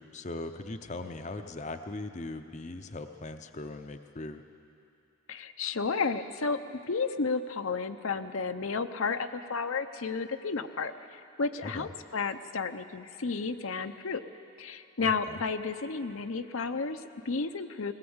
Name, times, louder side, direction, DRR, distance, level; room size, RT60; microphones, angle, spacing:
voice 1, 0.0-4.4 11.6-11.9 15.0-15.4, left 2 dB, 30° left, 7 dB, 0.6 m, -40 dB
voice 2, 5.3-14.2 14.6-17.9, left 4 dB, 65° left, 8 dB, 0.7 m, -32 dB
20.5 x 18.0 x 8.0 m, 2.7 s
head